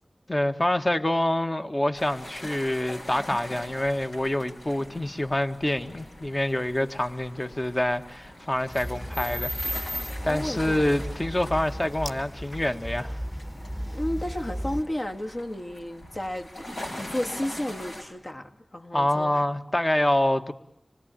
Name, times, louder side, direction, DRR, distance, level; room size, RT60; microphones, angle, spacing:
voice 1, 0.3-9.9 10.2-13.2 18.9-20.5, left 1 dB, 30° left, 7 dB, 1.6 m, -26 dB
sound 1, 1.9-18.0, left 1 dB, 90° left, 6.6 m, -43 dB
sound 2, 8.7-14.8, equal, 5° left, 1.3 m, -34 dB
voice 2, 10.2-11.0 13.9-19.4, left 1 dB, 50° left, 4 dB, 1.9 m, -33 dB
27.0 x 20.5 x 8.9 m, 0.77 s
wide cardioid pair, 50°, 0 cm